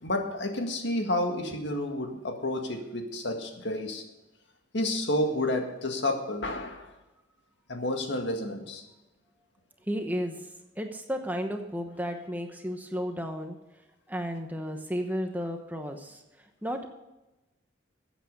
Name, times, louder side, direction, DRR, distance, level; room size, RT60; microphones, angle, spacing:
voice 1, 0.0-4.0 4.7-6.9 7.7-8.8, left 1 dB, 70° left, 4 dB, 1.9 m, -30 dB
voice 2, 9.9-10.4 10.8-13.6 14.1-16.2 16.6-16.9, equal, 10° right, 4 dB, 1.0 m, -33 dB
14.5 x 8.3 x 5.4 m, 1.0 s
head